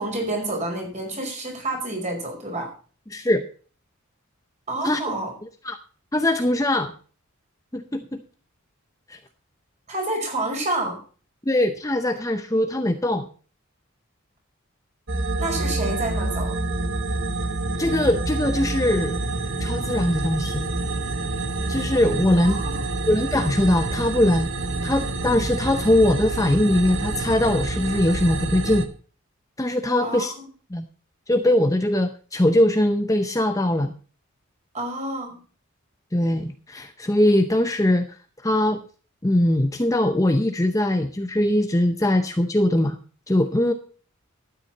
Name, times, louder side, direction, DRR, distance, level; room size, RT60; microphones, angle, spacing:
voice 1, 0.0-2.7 4.7-5.3 9.9-11.0 15.4-16.5 22.4-22.9 30.0-30.2 34.7-35.4, right 2 dB, 35° right, 1 dB, 5.1 m, -28 dB
voice 2, 3.1-3.4 4.8-5.0 5.6-5.8 6.1-6.9 7.7-8.2 9.1-9.2 11.5-13.3 17.8-19.2 19.6-20.7 21.7-22.6 23.0-24.5 24.8-28.9 29.6-30.3 30.7-30.8 31.3-33.9 36.1-38.1 38.4-38.8 39.2-43.0 43.3-43.7, left 1 dB, 15° left, 7 dB, 0.7 m, -21 dB
sound 1, 15.1-28.9, right 2 dB, 60° right, 1.4 m, -27 dB
12.5 x 9.5 x 4.1 m, 0.39 s
head